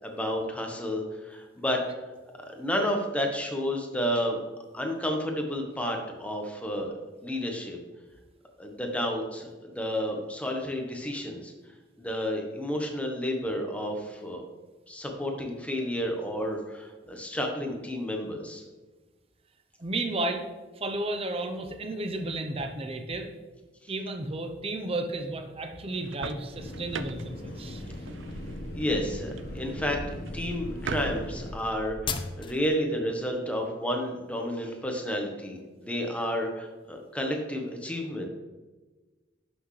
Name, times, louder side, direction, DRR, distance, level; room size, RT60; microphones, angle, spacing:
voice 1, 0.0-1.8 2.5-4.4 4.7-6.9 7.2-7.8 8.6-11.5 12.0-14.5 14.9-18.6 23.8-23.9 28.7-30.0 30.3-38.3, equal, 5° left, 2 dB, 1.1 m, -31 dB
voice 2, 19.8-20.5 20.8-23.3 23.9-27.8, right 2 dB, 30° right, 5 dB, 0.7 m, -33 dB
sound 1, 25.9-31.6, right 4 dB, 80° right, 0.5 m, -41 dB
sound 2, 26.5-31.5, left 1 dB, 55° left, 1.2 m, -40 dB
sound 3, 27.6-32.7, left 3 dB, 25° left, 0.5 m, -39 dB
11.0 x 6.2 x 3.2 m, 1.3 s
head